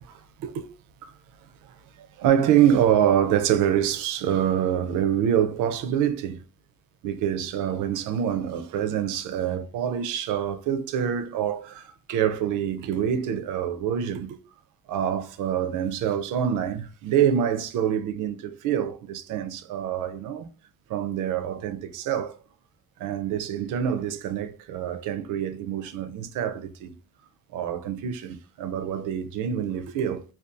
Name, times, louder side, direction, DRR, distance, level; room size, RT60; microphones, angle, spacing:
voice 1, 1.6-6.4 7.0-14.4 14.9-20.5 20.9-22.4 23.0-26.9 27.5-30.2, right 9 dB, 85° right, 0.5 m, -26 dB
2.4 x 2.3 x 2.5 m
cardioid pair, 90°, 30 cm